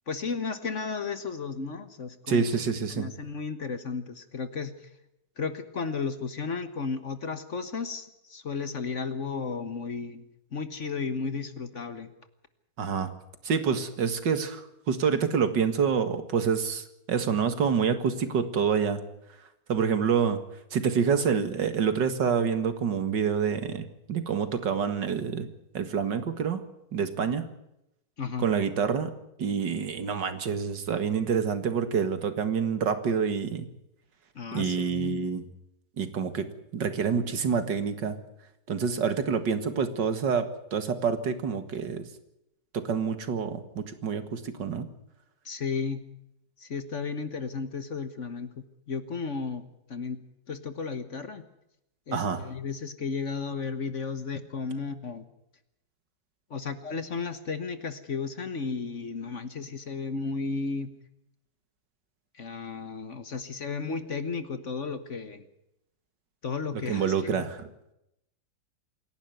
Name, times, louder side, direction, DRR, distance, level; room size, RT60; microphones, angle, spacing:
voice 1, 0.1-2.4 2.9-4.7 5.4-10.2 10.5-12.1 28.2-28.5 34.3-35.2 45.4-46.0 46.6-48.5 48.9-51.4 52.1-55.2 56.5-60.9 62.3-65.4 66.4-67.5, left 5 dB, 45° left, 11 dB, 1.5 m, -34 dB
voice 2, 2.3-3.1 12.8-13.1 13.4-19.0 19.7-20.4 20.7-25.5 25.7-26.6 26.9-27.5 28.4-29.1 29.4-33.7 34.5-35.5 36.0-38.2 38.7-42.1 42.7-44.9 52.1-52.5 66.7-67.7, right 6 dB, 75° right, 10 dB, 2.4 m, -27 dB
27.0 x 11.5 x 9.3 m, 0.83 s
omnidirectional pair, 1.9 m